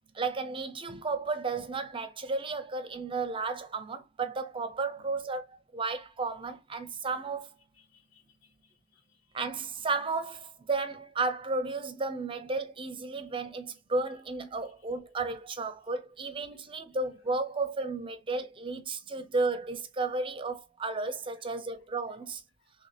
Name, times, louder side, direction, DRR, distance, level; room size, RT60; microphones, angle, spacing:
voice 1, 0.1-7.5 9.3-22.4, right 3 dB, 25° right, 0.5 m, -33 dB
voice 2, 7.7-9.4 14.6-14.7 22.6-22.7, left 7 dB, 85° left, 1.0 m, -67 dB
3.1 x 2.8 x 3.2 m
head